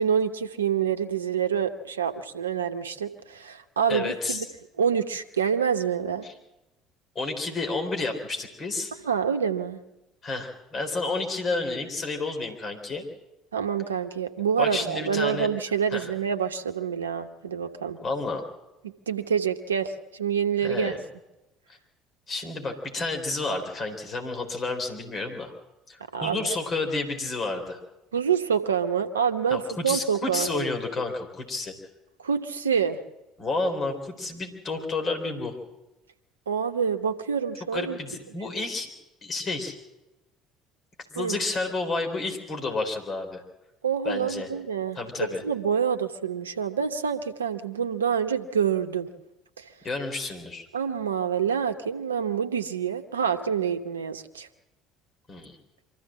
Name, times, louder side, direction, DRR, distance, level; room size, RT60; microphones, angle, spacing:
voice 1, 0.0-4.4 4.8-6.2 9.1-9.8 13.5-18.0 18.8-20.9 26.1-26.6 28.1-30.7 32.2-33.0 36.5-38.0 41.2-41.4 43.8-49.1 49.6-49.7 50.7-54.5, right 7 dB, 85° right, 8 dB, 1.0 m, -27 dB
voice 2, 3.9-4.5 6.2-6.3 7.1-8.9 10.2-13.0 14.6-15.5 15.9-16.1 18.0-18.4 20.6-21.0 21.7-21.8 22.3-25.5 25.9-27.8 29.5-31.7 33.4-35.6 37.7-38.9 39.2-39.8 41.1-43.4 44.0-44.5 45.0-45.4 49.8-50.7 55.3-55.6, left 3 dB, 40° left, 4 dB, 4.0 m, -30 dB
24.5 x 14.5 x 7.6 m, 0.99 s
figure-of-eight pair, 60°, 0 cm